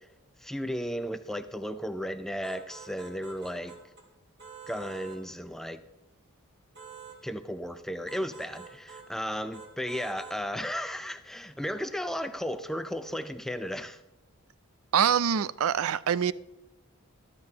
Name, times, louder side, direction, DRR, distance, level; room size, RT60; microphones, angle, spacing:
voice 1, 0.4-3.8 4.7-5.8 7.2-14.0, equal, ahead, 0.5 m, -34 dB
sound 1, 2.4-4.1 4.4-5.2 6.7-7.2 8.1-9.1 9.5-10.4, right 6 dB, 50° right, 1.9 m, -47 dB
voice 2, 14.9-16.3, right 8 dB, 70° right, 0.4 m, -25 dB
13.5 x 13.0 x 2.9 m
head